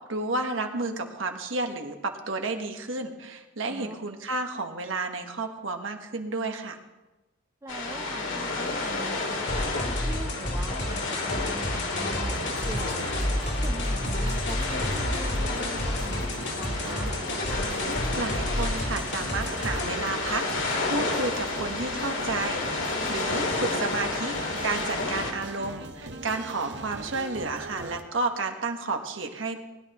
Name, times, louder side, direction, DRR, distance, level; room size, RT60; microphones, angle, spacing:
voice 1, 0.1-6.8 18.2-22.8 23.1-24.3 24.6-29.6, right 3 dB, 80° right, 4 dB, 1.3 m, -31 dB
voice 2, 7.6-13.1 13.6-17.1 25.0-25.1, right 1 dB, 15° right, 5 dB, 0.5 m, -42 dB
sound 1, 7.7-25.3, left 3 dB, 75° left, 2.3 m, -31 dB
sound 2, 9.5-19.9, left 1 dB, 60° left, 2.3 m, -31 dB
sound 3, 12.3-28.0, right 2 dB, 60° right, 0.9 m, -39 dB
20.0 x 11.0 x 3.0 m, 1.0 s
head